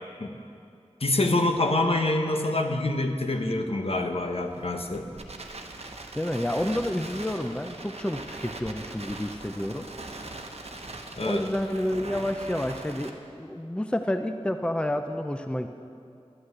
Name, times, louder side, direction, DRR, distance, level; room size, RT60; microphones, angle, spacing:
voice 1, 1.0-5.1 11.2-11.4, left 2 dB, 60° left, 4 dB, 1.0 m, -26 dB
Crackle, 3.8-13.1, right 2 dB, 70° right, 1.0 m, -41 dB
voice 2, 6.1-9.9 11.2-15.7, left 1 dB, 10° left, 7 dB, 0.5 m, -29 dB
11.5 x 6.2 x 9.2 m, 2.5 s
wide cardioid pair, 55°, 11 cm